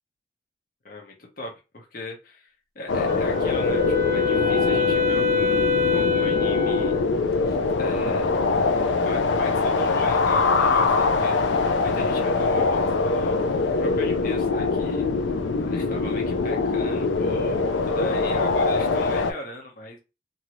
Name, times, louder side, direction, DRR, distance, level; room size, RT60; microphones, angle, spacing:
voice 1, 0.8-6.9 7.8-8.4 9.0-11.4 11.8-13.5 13.8-15.1 15.6-20.0, left 2 dB, 50° left, 1 dB, 0.8 m, -39 dB
sound 1, 2.9-19.3, left 3 dB, 80° left, 0.4 m, -23 dB
Wind instrument woodwind instrument, 3.1-7.1, left 5 dB, 60° right, 0.6 m, -24 dB
2.7 x 2.6 x 3.0 m, 0.28 s
head